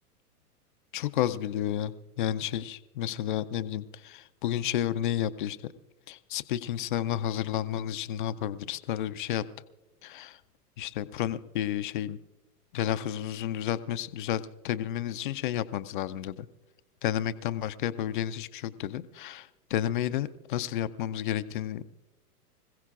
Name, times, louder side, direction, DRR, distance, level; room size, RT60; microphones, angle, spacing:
voice 1, 0.9-5.6 6.1-9.5 10.0-10.4 10.8-12.2 12.7-16.5 17.0-21.8, left 11 dB, 35° left, 13 dB, 0.4 m, -31 dB
26.0 x 16.0 x 2.4 m, 1.0 s
hypercardioid pair, 110°, 46 cm